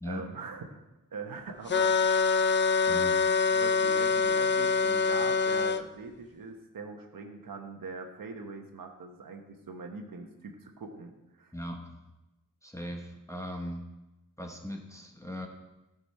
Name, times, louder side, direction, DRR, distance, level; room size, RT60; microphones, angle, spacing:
voice 1, 0.0-0.8 1.1-2.2 2.8-3.2 3.5-11.5, right 4 dB, 85° right, 4 dB, 1.1 m, -42 dB
sound 1, 1.7-5.8, left 5 dB, 35° left, 0.4 m, -25 dB
voice 2, 11.5-12.0 12.6-13.9 14.4-15.5, left 1 dB, 10° left, 2 dB, 1.0 m, -39 dB
15.0 x 5.2 x 4.2 m, 1.0 s
wide cardioid pair, 130°, 33 cm